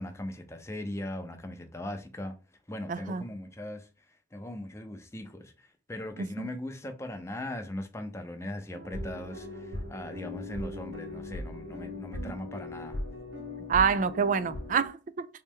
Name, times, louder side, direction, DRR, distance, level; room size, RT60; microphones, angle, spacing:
voice 1, 0.0-2.4 2.7-13.0, left 1 dB, 15° left, 0.6 m, -39 dB
voice 2, 2.9-3.2 6.2-6.3 13.7-15.3, right 6 dB, 45° right, 0.3 m, -27 dB
sound 1, 8.7-14.9, left 1 dB, 80° right, 1.3 m, -39 dB
3.1 x 3.1 x 3.5 m
head